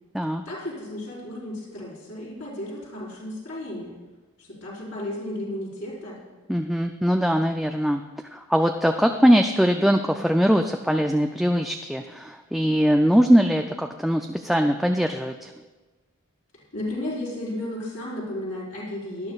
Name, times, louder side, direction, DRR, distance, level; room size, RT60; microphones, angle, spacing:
voice 1, 0.4-3.9 4.4-6.2 16.7-19.3, left 1 dB, 65° left, -7 dB, 4.4 m, -33 dB
voice 2, 6.5-8.0 8.3-15.5, equal, ahead, 4 dB, 0.3 m, -21 dB
18.5 x 11.5 x 2.4 m, 1.3 s
head